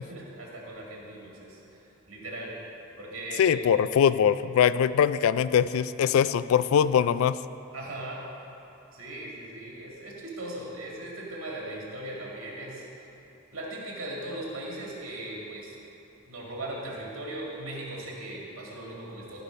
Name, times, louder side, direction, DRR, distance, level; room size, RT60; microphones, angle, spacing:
voice 1, 0.1-2.5 3.0-3.6 7.7-8.2 8.9-13.1 13.5-15.7 16.3-19.4, right 1 dB, 75° right, -3 dB, 2.2 m, -38 dB
voice 2, 3.4-7.4, left 8 dB, 85° left, 15 dB, 0.3 m, -22 dB
14.5 x 5.4 x 5.2 m, 2.9 s
head